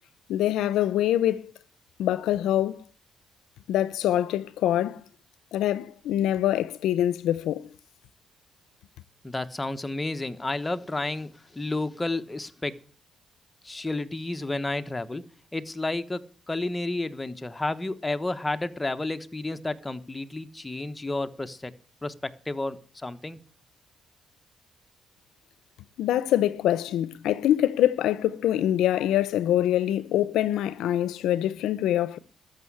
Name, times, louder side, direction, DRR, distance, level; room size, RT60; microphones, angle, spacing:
voice 1, 0.3-1.5 2.0-2.8 3.7-5.0 5.5-7.7 26.0-32.2, left 12 dB, 85° left, 0.6 m, -24 dB
voice 2, 9.2-12.8 13.6-15.2 15.5-21.7 22.0-23.4, left 2 dB, 15° left, 1.1 m, -31 dB
13.5 x 6.3 x 9.7 m
cardioid pair, 90°, 0 cm